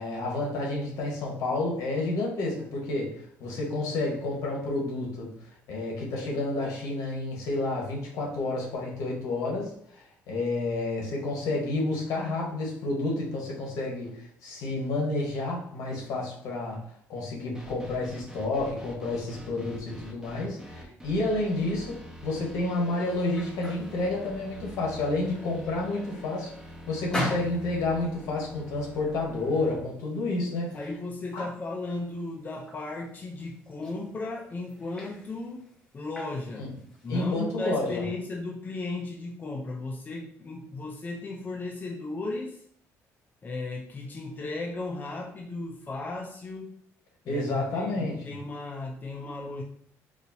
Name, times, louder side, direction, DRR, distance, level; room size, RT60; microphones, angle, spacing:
voice 1, 0.0-5.3 5.7-26.5 26.9-30.8 31.3-31.5 36.6-36.7 37.1-38.0 47.3-48.3, left 2 dB, 75° left, -2 dB, 1.4 m, -30 dB
sound 1, 17.5-29.8, equal, 10° right, 1.0 m, -46 dB
sound 2, 23.0-37.3, left 1 dB, 10° left, 1.2 m, -43 dB
voice 2, 30.7-35.7 35.9-36.7 37.0-42.6 43.4-46.7 47.2-49.6, left 2 dB, 30° left, 0 dB, 0.6 m, -35 dB
4.9 x 2.6 x 2.8 m, 0.65 s
cardioid pair, 100°, 6 cm